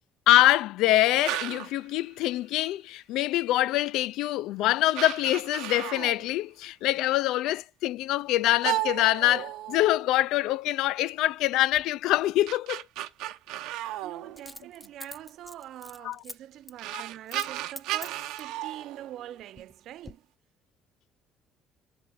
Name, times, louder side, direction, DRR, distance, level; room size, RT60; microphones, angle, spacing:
voice 1, 0.3-12.8 16.0-16.2 16.9-17.0, left 15 dB, 75° left, 0.3 m, -25 dB
sound 1, 1.2-1.8 3.9-4.0 4.6-4.7 4.9-6.3 8.6-10.2 12.2-14.9 16.3-16.4 16.8-19.6, right 14 dB, 90° right, 0.8 m, -34 dB
Coin (dropping), 11.7-11.8 14.4-16.4 16.7-16.8 17.3-17.5 17.8-18.6 19.2-19.7 20.0-20.1, left 1 dB, 10° left, 0.4 m, -44 dB
voice 2, 14.0-20.2, right 12 dB, 60° right, 0.4 m, -44 dB
7.5 x 4.3 x 3.7 m
cardioid pair, 145°, 0 cm